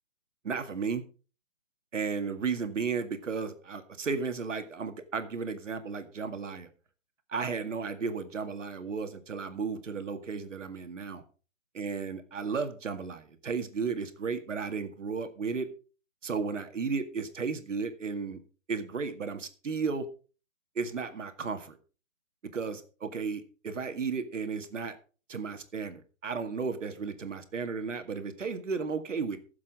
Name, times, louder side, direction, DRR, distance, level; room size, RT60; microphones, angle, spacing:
voice 1, 0.4-1.0 1.9-6.7 7.3-11.2 11.8-15.7 16.2-18.4 18.7-20.1 20.8-21.8 22.5-25.0 25.3-29.4, right 5 dB, 70° right, 9 dB, 2.1 m, -34 dB
14.5 x 7.5 x 4.9 m, 0.37 s
hypercardioid pair, 155°, 38 cm